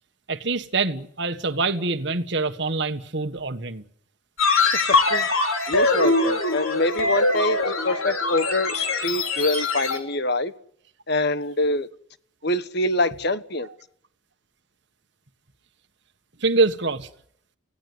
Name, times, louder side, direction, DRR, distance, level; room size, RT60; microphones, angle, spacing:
voice 1, 0.3-3.8 16.4-17.1, right 3 dB, 55° right, 1.6 m, -25 dB
sound 1, 4.4-10.0, left 3 dB, 85° left, 3.6 m, -22 dB
voice 2, 4.6-5.3 5.7-10.5 11.1-11.9 12.4-13.7, left 2 dB, 50° left, 1.2 m, -25 dB
25.0 x 17.5 x 9.6 m
head